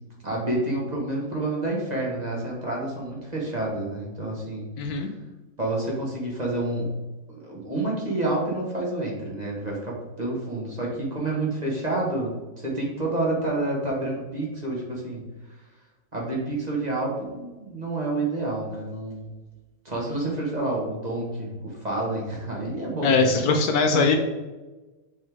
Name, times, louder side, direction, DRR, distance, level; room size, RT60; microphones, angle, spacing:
voice 1, 0.2-4.7 5.6-6.9 7.3-12.4 12.6-15.2 16.1-19.3 19.9-23.4 23.9-24.2, right 2 dB, 25° right, -3 dB, 1.6 m, -29 dB
voice 2, 4.8-5.1 23.0-24.2, left 4 dB, 70° left, 5 dB, 1.1 m, -21 dB
7.1 x 4.3 x 3.5 m, 1.2 s
omnidirectional pair, 1.8 m